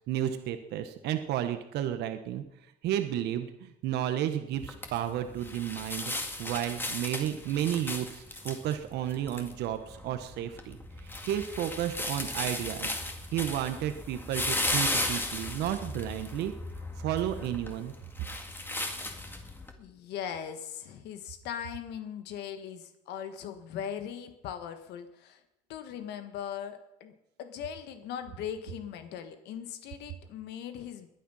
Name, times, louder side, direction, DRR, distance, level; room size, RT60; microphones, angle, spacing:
voice 1, 0.1-2.4 2.8-12.9 13.3-16.5 17.0-17.9, right 11 dB, 80° right, 8 dB, 1.3 m, -32 dB
sound 1, 4.5-19.7, left 2 dB, 10° left, 2.1 m, -36 dB
voice 2, 19.8-25.4 25.7-27.1 27.4-31.1, left 9 dB, 80° left, 8 dB, 1.6 m, -39 dB
21.0 x 9.4 x 5.6 m, 0.85 s
cardioid pair, 110°, 17 cm